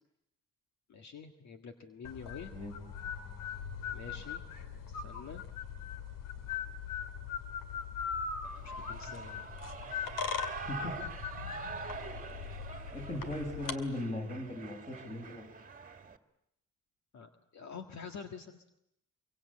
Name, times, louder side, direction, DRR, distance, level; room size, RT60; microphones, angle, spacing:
voice 1, 0.9-2.5 3.9-4.4 4.9-5.4 8.6-9.5 17.1-18.6, left 6 dB, 60° left, 6 dB, 1.9 m, -47 dB
sound 1, 2.0-13.8, left 6 dB, 85° left, 2.5 m, -40 dB
voice 2, 2.5-2.8 10.7-11.0 12.9-15.5, left 1 dB, 20° left, 3 dB, 7.3 m, -38 dB
Shout / Cheering, 8.4-16.2, right 5 dB, 25° right, 2.1 m, -45 dB
26.0 x 24.0 x 8.7 m, 0.80 s
cardioid pair, 120°, 32 cm